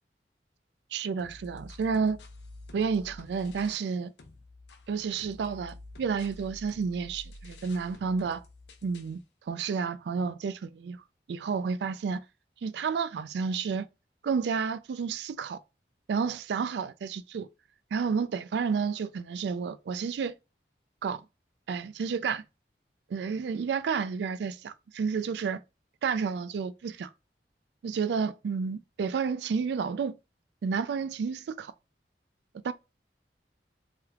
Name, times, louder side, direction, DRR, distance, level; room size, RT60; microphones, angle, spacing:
voice 1, 0.9-2.2 2.7-4.1 4.9-8.4 8.8-9.2 9.5-11.0 11.3-12.2 12.6-13.9 14.2-15.6 16.1-17.5 17.9-20.3 21.0-21.2 21.7-22.4 23.1-25.6 26.0-27.1 27.8-30.2 30.6-31.7 32.6-32.7, right 5 dB, 80° right, 0.3 m, -30 dB
sound 1, 1.2-3.9 4.2-9.2, left 1 dB, 80° left, 0.6 m, -49 dB
3.3 x 2.3 x 2.8 m
head